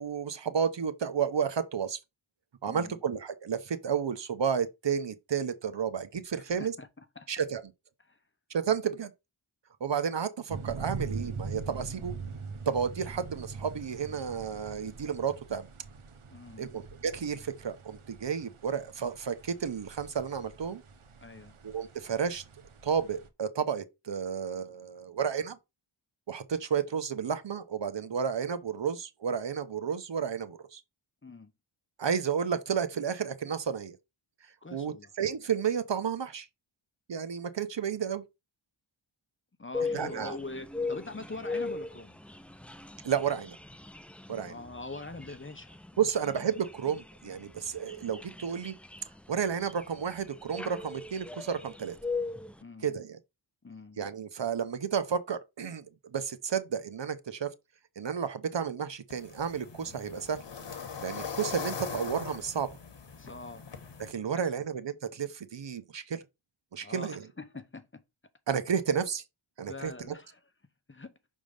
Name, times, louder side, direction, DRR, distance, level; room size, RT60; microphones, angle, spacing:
voice 1, 0.0-2.0 2.6-6.7 7.3-7.6 8.5-9.1 9.8-12.1 12.7-15.7 16.6-20.8 21.6-22.4 22.8-25.6 26.3-30.8 32.0-34.0 34.7-36.5 37.1-38.2 39.9-40.4 43.0-43.6 44.3-44.5 46.0-48.7 49.3-52.0 52.8-53.2 54.0-55.8 56.1-57.5 58.0-60.4 61.0-62.7 64.0-66.2 66.7-67.2 68.5-69.2 69.6-70.1, right 7 dB, 60° right, 0.9 m, -32 dB
voice 2, 2.7-3.0 6.6-6.9 7.2-7.3 8.0-8.2 16.3-16.7 21.2-21.5 31.2-31.5 34.6-35.1 39.6-42.2 44.4-46.1 52.6-52.9 53.6-54.0 63.1-63.7 64.4-64.6 66.8-67.9 69.7-70.4 70.9-71.1, left 3 dB, 25° left, 0.9 m, -44 dB
sound 1, 10.5-23.3, right 4 dB, 80° right, 1.1 m, -43 dB
sound 2, 39.7-52.6, left 3 dB, 5° left, 0.4 m, -39 dB
sound 3, 59.1-64.1, left 6 dB, 60° left, 1.2 m, -41 dB
6.1 x 3.7 x 5.2 m
wide cardioid pair, 75°, 49 cm